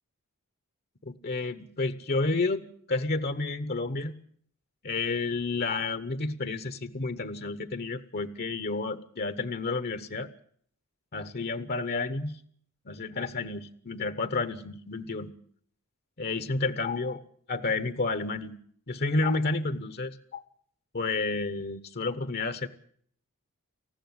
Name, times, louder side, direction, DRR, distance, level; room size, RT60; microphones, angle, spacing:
voice 1, 1.0-4.1 4.8-10.3 11.1-12.4 12.9-15.3 16.2-17.2 17.5-18.6 18.9-20.4 20.9-22.7, left 3 dB, 45° left, 11 dB, 1.0 m, -30 dB
19.0 x 15.0 x 9.6 m, 0.62 s
head